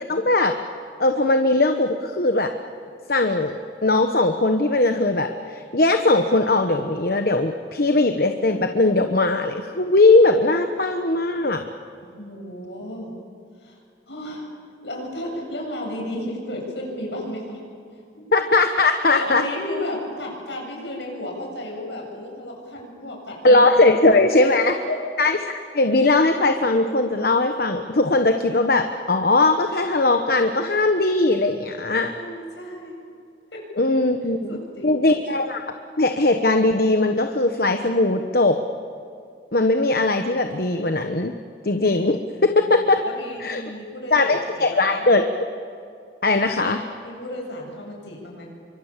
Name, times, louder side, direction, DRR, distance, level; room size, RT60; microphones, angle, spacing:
voice 1, 0.1-0.5 1.0-2.5 3.1-11.7 18.3-19.4 23.4-24.7 25.2-25.4 25.7-32.1 33.8-35.6 36.0-38.6 39.5-41.3 41.6-43.0 43.4-43.6 44.1-45.3 46.2-46.8, left 2 dB, 55° left, 6 dB, 1.1 m, -19 dB
voice 2, 12.0-13.1 13.6-13.8 14.1-14.5 14.8-17.6 17.9-18.3 19.1-24.0 24.3-25.0 32.1-32.9 33.5-33.7 34.5-35.0 42.3-42.7 43.0-45.0 47.0-48.5, left 1 dB, 75° left, 0 dB, 8.0 m, -33 dB
28.5 x 25.0 x 7.4 m, 2.4 s
head